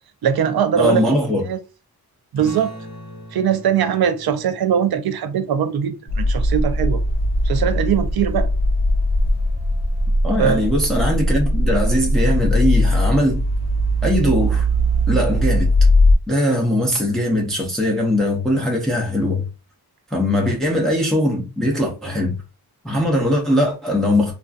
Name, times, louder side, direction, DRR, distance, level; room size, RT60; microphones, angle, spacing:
voice 1, 0.2-1.2 1.4-1.6 2.3-2.8 3.3-7.0 7.4-8.5 10.4-10.7 20.5-20.6, right 8 dB, 70° right, 0.5 m, -21 dB
voice 2, 0.8-1.4 10.2-13.4 14.0-14.7 15.1-15.7 16.3-19.4 20.1-22.4 22.8-24.3, left 1 dB, ahead, 0.5 m, -20 dB
sound 1, 2.3-7.5, equal, 45° left, 0.9 m, -42 dB
sound 2, 6.1-16.2, equal, 80° left, 0.7 m, -19 dB
2.5 x 2.3 x 2.3 m
wide cardioid pair, 135°, 39 cm